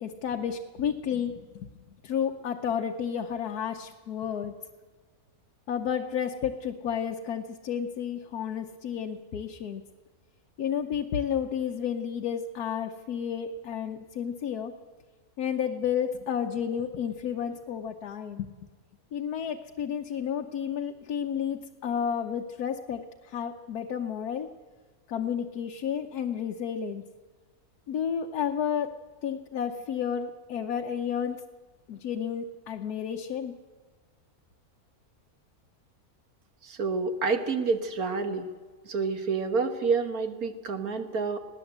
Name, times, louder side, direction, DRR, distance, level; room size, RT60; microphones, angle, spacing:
voice 1, 0.0-1.7 2.0-4.5 5.7-9.8 10.6-14.7 15.4-18.5 19.1-24.5 25.1-27.0 27.9-28.9 29.2-31.4 31.9-33.5, left 8 dB, 85° left, 4 dB, 1.4 m, -31 dB
voice 2, 36.6-38.5 38.9-41.4, right 4 dB, 70° right, 7 dB, 2.0 m, -28 dB
20.5 x 18.0 x 8.0 m, 1.4 s
omnidirectional pair, 1.6 m